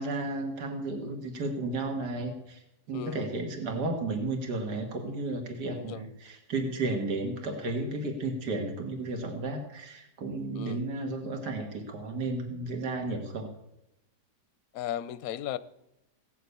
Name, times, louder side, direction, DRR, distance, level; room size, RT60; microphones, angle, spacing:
voice 1, 0.0-2.6 2.9-13.5, right 2 dB, 70° right, 2.5 m, -33 dB
voice 2, 2.9-3.3 5.8-6.0 10.5-10.8 14.7-15.6, left 11 dB, 65° left, 1.0 m, -36 dB
17.0 x 7.3 x 8.4 m
omnidirectional pair, 1.8 m